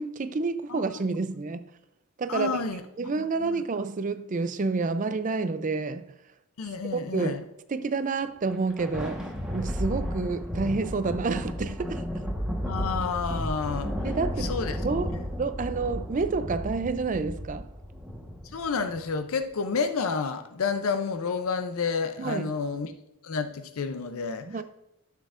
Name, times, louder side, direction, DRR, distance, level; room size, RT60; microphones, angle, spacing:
voice 1, 0.0-1.7 2.2-2.6 3.0-6.1 6.9-7.4 7.7-9.2 9.5-12.0 14.0-17.7 22.2-22.5 24.5-24.6, right 4 dB, 35° right, 0.4 m, -29 dB
voice 2, 2.3-2.8 3.2-3.6 6.6-7.4 12.6-13.9 14.4-14.8 18.5-22.9 23.2-24.5, left 5 dB, 70° left, 0.5 m, -30 dB
Thunder, 8.4-19.1, equal, 5° right, 1.2 m, -33 dB
12.0 x 7.4 x 2.5 m
head